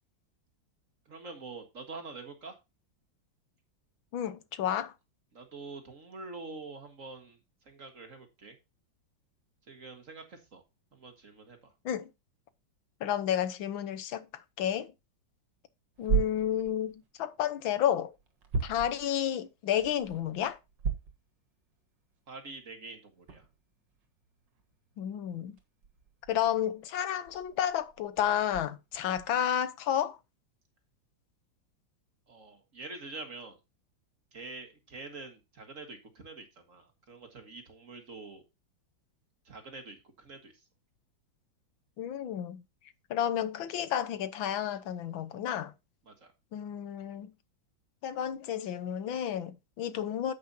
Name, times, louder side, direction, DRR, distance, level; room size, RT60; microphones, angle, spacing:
voice 1, 1.1-2.6 5.3-7.4 7.6-8.6 9.7-10.6 10.9-11.7 22.3-23.4 32.3-33.6 34.3-38.4 39.5-40.5 46.1-46.3, right 3 dB, 45° right, 1.9 m, -46 dB
voice 2, 4.1-4.9 11.9-12.1 13.0-14.3 14.6-14.9 16.0-16.9 17.2-18.1 18.6-20.6 25.0-25.5 26.3-30.2 42.0-42.6 43.1-45.7 46.5-47.3 48.0-50.3, left 10 dB, 85° left, 1.7 m, -31 dB
sound 1, 16.0-17.1 17.7-19.2 19.7-21.3 21.7-21.8 22.4-22.5 23.2-29.4, right 6 dB, 65° right, 2.2 m, -36 dB
9.5 x 8.7 x 2.7 m
omnidirectional pair, 2.1 m